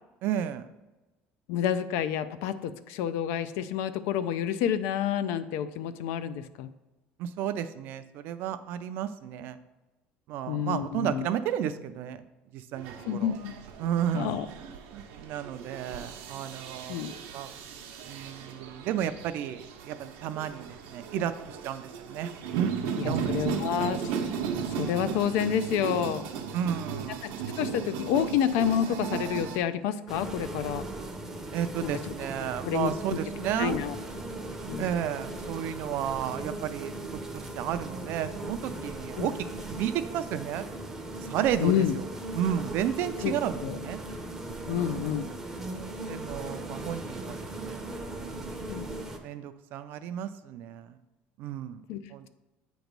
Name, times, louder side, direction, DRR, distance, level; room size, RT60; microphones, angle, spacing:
voice 1, 0.2-0.7 7.2-9.6 10.3-12.2 12.5-13.3 13.8-17.5 18.1-22.7 23.0-23.7 26.3-27.5 31.5-33.8 34.8-39.3 39.7-40.7 41.2-42.1 42.3-44.0 44.7-45.1 46.0-48.7 49.2-51.0 51.4-51.8 52.1-52.3, right 10 dB, 55° right, 11 dB, 0.4 m, -33 dB
voice 2, 1.5-6.7 10.5-11.3 13.1-13.5 14.1-14.5 16.9-17.1 23.0-24.1 24.8-26.3 27.2-30.9 31.8-31.9 32.6-33.2 33.6-34.0 34.7-34.9 39.2-39.3 41.6-41.9 43.2-43.3 43.6-43.8 44.7-45.3 48.7-48.9 51.9-52.0, left 9 dB, 75° left, 13 dB, 0.4 m, -29 dB
sound 1, 12.8-29.6, right 7 dB, 85° right, 0.7 m, -36 dB
sound 2, 30.1-49.2, right 2 dB, 10° right, 0.6 m, -38 dB
7.9 x 3.0 x 5.2 m, 1.1 s
cardioid pair, 160°, 4 cm